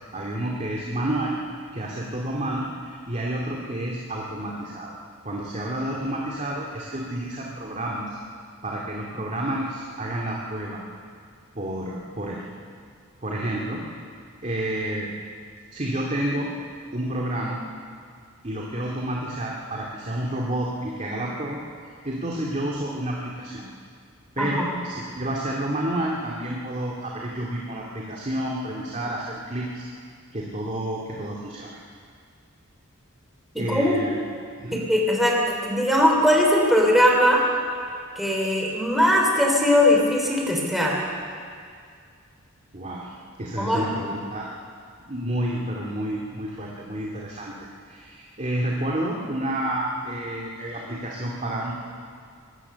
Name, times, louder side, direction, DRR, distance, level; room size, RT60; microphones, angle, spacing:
voice 1, 0.0-1.4 1.7-5.0 5.2-8.2 8.6-10.8 11.5-12.4 13.2-13.8 14.4-15.1 15.7-16.5 16.9-17.6 18.4-21.6 22.0-23.6 24.4-29.8 30.3-31.8 33.6-34.2 34.6-34.9 42.7-44.5 45.1-51.8, right 1 dB, 30° right, -3 dB, 2.3 m, -30 dB
voice 2, 33.5-34.0 34.7-37.4 38.2-41.0 43.6-43.9, left 1 dB, ahead, -1 dB, 3.5 m, -20 dB
24.5 x 20.0 x 6.9 m, 2.2 s
head